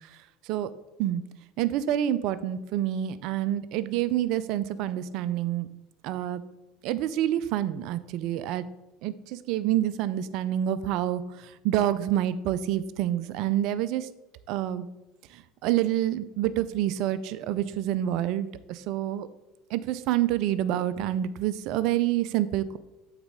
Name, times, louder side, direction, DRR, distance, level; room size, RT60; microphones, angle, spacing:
voice 1, 1.6-5.7 6.0-6.4 6.8-8.6 9.0-11.2 11.6-14.1 14.5-14.8 15.6-19.3 19.7-22.8, right 12 dB, 60° right, 16 dB, 0.4 m, -27 dB
8.0 x 4.1 x 3.6 m, 1.0 s
hypercardioid pair, 75°, 0 cm